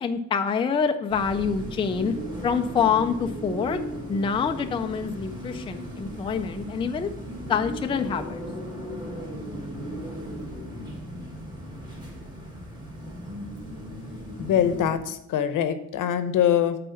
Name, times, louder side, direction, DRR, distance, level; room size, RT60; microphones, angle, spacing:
voice 1, 0.0-2.1 2.4-3.8 4.1-7.1 7.5-8.4, left 6 dB, 15° left, 6 dB, 0.3 m, -26 dB
sound 1, 1.1-14.9, equal, 15° right, 1.6 m, -36 dB
voice 2, 14.4-16.8, left 9 dB, 75° left, 10 dB, 0.8 m, -23 dB
9.1 x 4.2 x 5.6 m, 0.80 s
cardioid pair, 170°, 32 cm